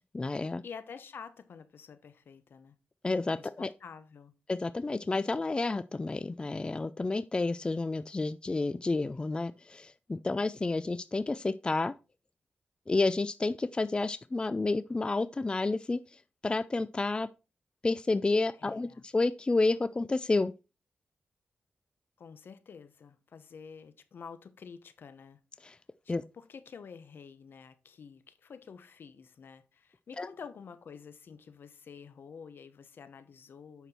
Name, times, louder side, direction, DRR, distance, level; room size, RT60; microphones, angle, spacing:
voice 1, 0.0-0.6 3.0-3.7 4.5-11.9 12.9-16.0 16.4-17.3 17.8-20.5 25.6-25.8 26.1-26.2 30.2-30.3, left 3 dB, 25° left, 0.4 m, -30 dB
voice 2, 0.6-2.7 3.4-4.3 18.6-19.0 22.2-25.4 26.0-33.9, left 6 dB, 70° left, 1.0 m, -49 dB
8.2 x 5.9 x 4.4 m
cardioid pair, 80°, 4 cm